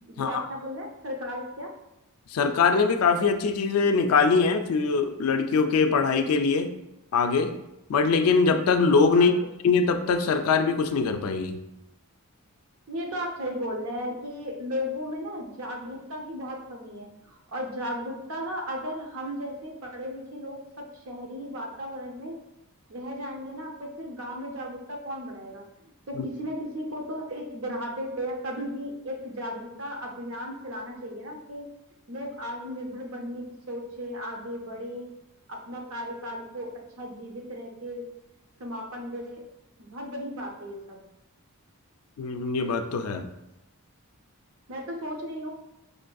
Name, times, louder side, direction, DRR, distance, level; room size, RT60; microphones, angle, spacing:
voice 1, 0.0-1.7 9.1-9.5 12.9-22.4 22.9-25.6 26.1-31.7 32.1-35.1 35.5-38.1 38.6-39.4 39.8-41.0 44.7-45.5, equal, 60° right, 1 dB, 0.7 m, -35 dB
voice 2, 2.3-6.7 7.1-7.5 7.9-9.4 9.6-11.6 26.2-26.3 42.2-43.3, left 4 dB, 75° left, 7 dB, 0.4 m, -22 dB
4.9 x 2.5 x 2.3 m, 0.90 s
head